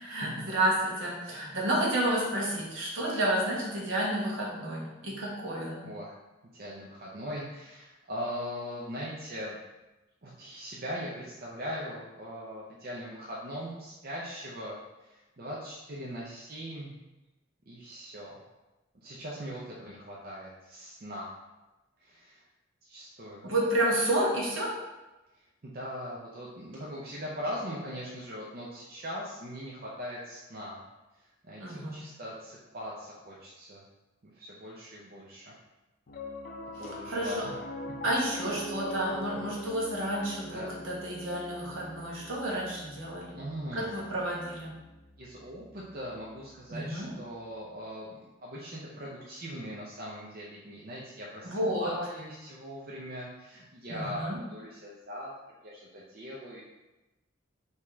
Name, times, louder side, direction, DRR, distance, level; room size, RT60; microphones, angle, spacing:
voice 1, 0.0-5.8 23.4-24.8 31.6-32.0 37.1-37.5 38.0-43.4 43.7-44.7 46.7-47.1 51.4-51.9 53.9-54.4, right 1 dB, 70° right, -4 dB, 1.2 m, -30 dB
voice 2, 5.8-6.1 6.5-9.6 10.2-16.9 17.7-18.4 19.0-21.3 22.0-22.4 22.8-23.5 25.6-30.8 31.2-33.8 34.3-35.5 36.8-37.6 38.5-38.6 40.5-40.7 43.3-43.9 45.2-55.3 55.6-56.6, equal, 50° right, -5 dB, 0.6 m, -40 dB
Piano, 36.1-46.6, left 1 dB, 45° left, 0.5 m, -43 dB
4.8 x 2.9 x 3.5 m, 1.1 s
head